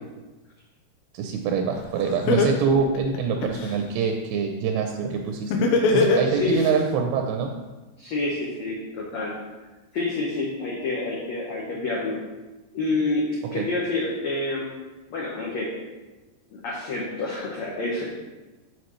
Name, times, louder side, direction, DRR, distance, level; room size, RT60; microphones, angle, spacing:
voice 1, 1.1-5.5 5.9-7.5 13.5-13.7, right 6 dB, 85° right, 4 dB, 2.9 m, -25 dB
Laughter, 1.8-1.9 2.3-3.7 5.5-6.7, left 3 dB, 90° left, 3.2 m, -20 dB
voice 2, 6.2-6.6 8.0-9.4 9.9-12.2 12.7-13.3 13.5-14.7 15.1-15.7 16.6-18.0, left 2 dB, 70° left, -4 dB, 1.7 m, -28 dB
14.5 x 4.9 x 3.1 m, 1.1 s
omnidirectional pair, 4.9 m